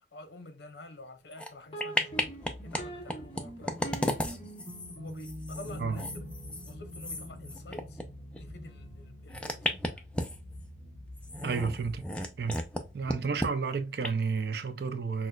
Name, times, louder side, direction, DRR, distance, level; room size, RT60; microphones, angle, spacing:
voice 1, 0.0-4.5 5.0-6.3 6.6-8.0 8.4-10.1, left 2 dB, 80° left, 0.8 m, -49 dB
sound 1, 1.3-1.5 1.8-2.8 3.1-8.0 8.3-8.4 9.3-10.6 11.2-12.8 13.1-13.5 14.0-14.1, left 1 dB, 5° left, 0.4 m, -34 dB
sound 2, 1.7-11.5, right 1 dB, 30° left, 1.0 m, -45 dB
sound 3, 2.1-13.2, equal, 40° right, 0.9 m, -51 dB
voice 2, 11.4-12.1 12.4-12.6 12.9-15.3, right 5 dB, 65° right, 0.4 m, -31 dB
6.0 x 2.1 x 2.3 m
head